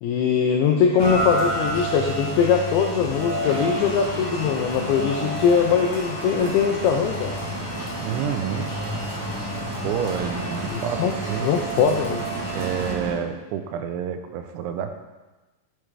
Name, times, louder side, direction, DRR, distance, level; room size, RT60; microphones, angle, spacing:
voice 1, 0.0-7.4 10.7-11.1 11.4-12.3, left 6 dB, 85° left, 2 dB, 2.2 m, -21 dB
Rain, 1.0-12.9, left 1 dB, 60° left, 1.6 m, -31 dB
sound 1, 3.4-13.1, right 3 dB, 70° right, 1.8 m, -34 dB
voice 2, 8.0-8.7 9.8-11.0 11.3-11.5 12.5-15.1, right 8 dB, 90° right, 7 dB, 3.0 m, -29 dB
10.5 x 8.6 x 3.4 m, 1.2 s
omnidirectional pair, 5.3 m